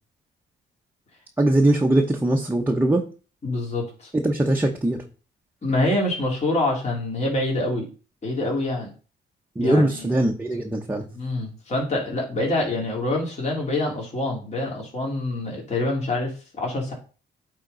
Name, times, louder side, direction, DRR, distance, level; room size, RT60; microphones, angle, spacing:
voice 1, 1.4-3.1 4.1-5.0 9.6-11.1, right 1 dB, 10° right, 1 dB, 1.0 m, -21 dB
voice 2, 3.4-4.1 5.6-7.9 8.2-8.9 9.6-10.1 11.1-16.9, left 2 dB, 35° left, -2 dB, 3.0 m, -26 dB
9.4 x 3.9 x 4.0 m, 0.36 s
cardioid pair, 90°, 20 cm